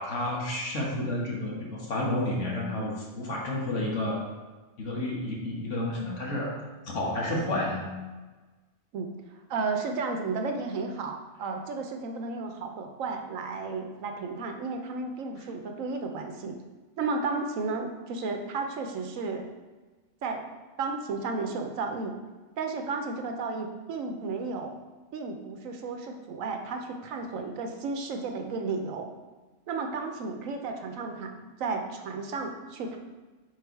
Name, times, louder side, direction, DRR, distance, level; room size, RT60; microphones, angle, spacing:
voice 1, 0.0-4.2 4.8-6.6 6.8-7.8, left 1 dB, 65° left, -2 dB, 1.5 m, -30 dB
voice 2, 9.5-16.6 17.0-19.5 20.2-20.4 20.8-22.1 22.6-24.8 25.1-29.1 29.7-31.3 31.6-33.0, right 4 dB, 75° right, 4 dB, 1.1 m, -33 dB
4.8 x 4.4 x 4.6 m, 1.3 s
omnidirectional pair, 1.4 m